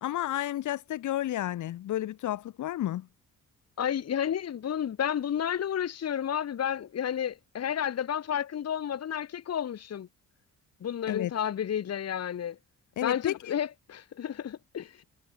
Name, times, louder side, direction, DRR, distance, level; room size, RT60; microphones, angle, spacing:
voice 1, 0.0-3.1 11.1-11.3 13.0-13.5, left 13 dB, 80° left, 3.5 m, -31 dB
voice 2, 3.8-10.1 10.8-12.6 13.0-15.0, left 9 dB, 55° left, 2.1 m, -31 dB
cardioid pair, 85°, 30 cm